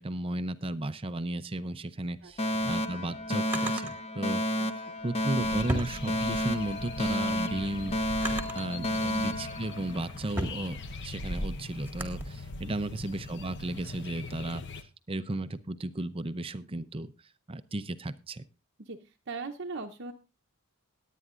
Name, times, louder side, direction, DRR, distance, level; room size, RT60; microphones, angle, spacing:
voice 1, 0.0-4.4 5.0-8.0 8.3-14.6 15.1-17.1 17.5-18.5, right 2 dB, 25° right, 11 dB, 0.5 m, -34 dB
Drawer open or close, 2.3-3.9 5.0-6.6 7.1-8.8 9.4-12.2, equal, 10° right, 1.7 m, -38 dB
Alarm, 2.4-10.4, equal, 25° left, 0.7 m, -31 dB
sound 1, 5.4-14.8, left 2 dB, 55° left, 1.0 m, -40 dB
voice 2, 18.8-20.1, right 4 dB, 50° right, 3 dB, 0.8 m, -40 dB
20.5 x 9.2 x 2.5 m, 0.30 s
head